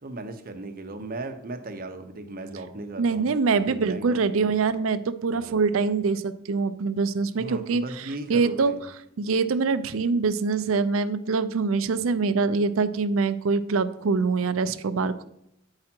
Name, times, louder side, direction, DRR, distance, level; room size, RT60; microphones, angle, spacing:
voice 1, 0.0-4.5 5.3-5.6 7.3-8.8, right 2 dB, 45° right, 6 dB, 0.8 m, -37 dB
voice 2, 3.0-7.8 8.3-8.8 9.2-15.2, right 4 dB, 75° right, 13 dB, 0.5 m, -24 dB
8.6 x 4.8 x 4.4 m, 0.77 s
head